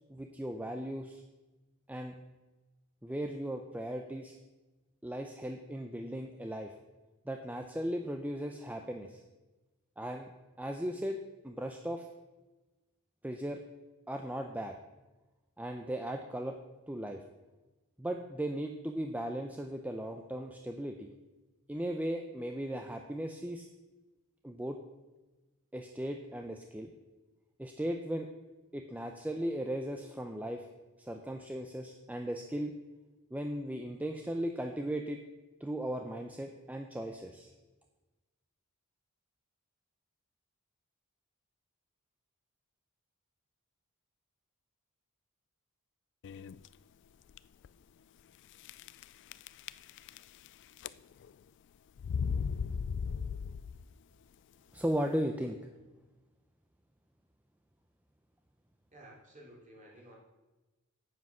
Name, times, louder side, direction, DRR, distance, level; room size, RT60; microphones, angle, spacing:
voice 1, 0.1-1.2 1.9-2.1 3.0-4.3 5.0-6.7 7.3-9.2 10.0-10.3 10.6-11.2 11.4-12.1 13.2-13.6 14.1-14.8 15.6-16.6 16.9-17.2 18.0-21.1 21.7-23.7 24.4-24.8 25.7-26.9 27.6-28.3 28.7-30.7 31.0-32.7 33.3-35.2 35.6-37.5 54.7-55.6, right 1 dB, 5° right, 4 dB, 0.6 m, -37 dB
sound 1, 46.2-46.7 47.3-47.4 47.6-47.7 48.6-49.0 49.3-50.5 50.8-51.3 52.0-53.9, left 6 dB, 55° left, 0.3 m, -36 dB
voice 2, 58.9-60.1, right 1 dB, 35° right, -3 dB, 3.3 m, -54 dB
9.3 x 8.4 x 6.0 m, 1.1 s
head